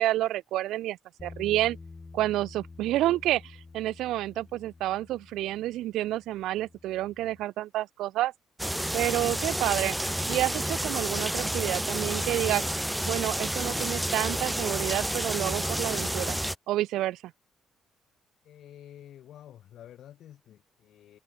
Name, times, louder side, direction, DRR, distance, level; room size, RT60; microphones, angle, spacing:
voice 1, 0.0-1.8 2.1-8.3 8.9-10.0 10.3-12.6 13.0-16.4 16.7-17.3, right 15 dB, 90° right, 0.9 m, -29 dB
Bass guitar, 1.2-7.4, left 3 dB, 25° left, 3.0 m, -49 dB
sound 1, 8.6-16.6, right 1 dB, 5° right, 0.5 m, -30 dB
voice 2, 18.4-21.2, left 11 dB, 75° left, 3.7 m, -50 dB
cardioid pair, 90°, 0 cm